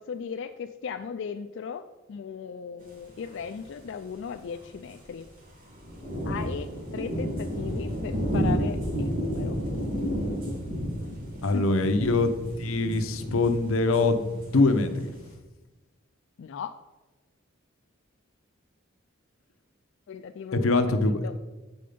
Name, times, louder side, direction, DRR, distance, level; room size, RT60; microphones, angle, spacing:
voice 1, 0.0-5.3 6.2-9.6 11.0-11.2 11.5-11.6 16.4-16.7 20.1-21.4, left 6 dB, 60° left, 8 dB, 0.3 m, -37 dB
sound 1, 3.7-3.8 3.9-4.0 4.4-4.6 4.8-5.2 5.7-15.3, equal, 45° right, 2.7 m, -31 dB
voice 2, 11.4-12.3 12.6-15.1 20.6-21.2, left 3 dB, 90° left, 8 dB, 0.8 m, -23 dB
7.7 x 5.3 x 5.0 m, 1.2 s
head